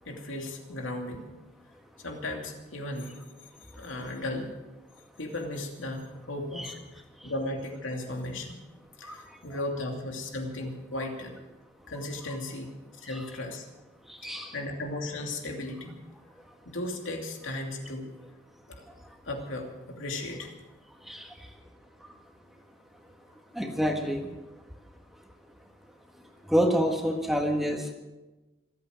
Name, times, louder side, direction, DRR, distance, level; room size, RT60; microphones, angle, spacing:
voice 1, 0.1-1.2 2.0-3.1 3.8-4.5 5.2-6.7 7.2-8.6 9.0-11.3 11.9-12.7 13.0-13.7 14.2-15.9 16.7-18.1 18.7-18.8 19.2-20.5, left 1 dB, 90° left, 2 dB, 2.7 m, -35 dB
voice 2, 14.2-14.5 21.1-21.3 23.5-24.2 26.5-27.9, equal, ahead, 2 dB, 1.5 m, -27 dB
25.5 x 8.7 x 6.5 m, 1.1 s
head